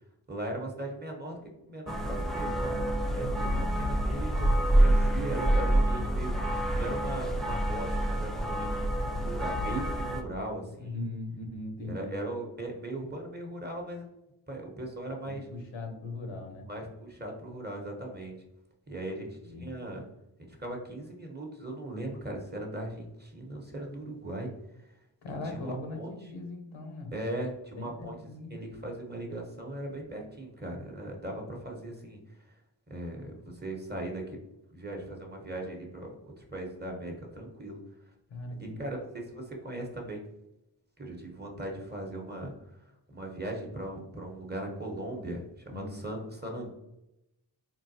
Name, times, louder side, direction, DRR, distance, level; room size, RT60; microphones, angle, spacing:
voice 1, 0.3-1.4 1.7-3.5 3.8-11.0 11.8-14.1 14.5-15.5 16.7-18.3 18.9-20.0 20.5-24.5 24.8-24.9 25.4-26.1 27.1-28.2 28.5-32.5 32.9-34.4 34.7-37.8 38.6-40.2 41.0-46.7, right 1 dB, 20° right, 1 dB, 1.0 m, -39 dB
sound 1, 1.9-10.2, right 1 dB, ahead, 0.4 m, -27 dB
voice 2, 3.0-3.9 10.7-12.2 15.2-16.7 19.4-19.8 25.2-27.1 27.8-28.6 38.3-38.8 45.7-46.0, left 2 dB, 75° left, 3 dB, 0.8 m, -40 dB
3.7 x 2.2 x 2.7 m, 0.88 s
cardioid pair, 40°, 47 cm